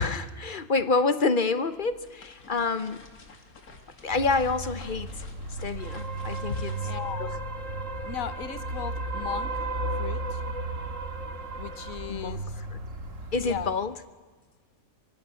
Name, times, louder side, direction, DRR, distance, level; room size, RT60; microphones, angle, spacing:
voice 1, 0.0-3.0 4.0-5.2 5.5-6.8 7.2-7.4 12.1-12.4 12.7-12.8 13.3-13.9, left 4 dB, 40° left, 12 dB, 0.9 m, -27 dB
sound 1, 1.7-8.0, left 3 dB, 90° left, 2.7 m, -51 dB
sound 2, 4.1-13.7, right 2 dB, 60° right, 2.1 m, -34 dB
voice 2, 6.5-7.4 8.1-9.7 9.9-10.4 11.6-12.6 13.4-13.7, left 9 dB, 70° left, 14 dB, 1.4 m, -37 dB
23.5 x 22.0 x 6.9 m, 1.4 s
omnidirectional pair, 1.5 m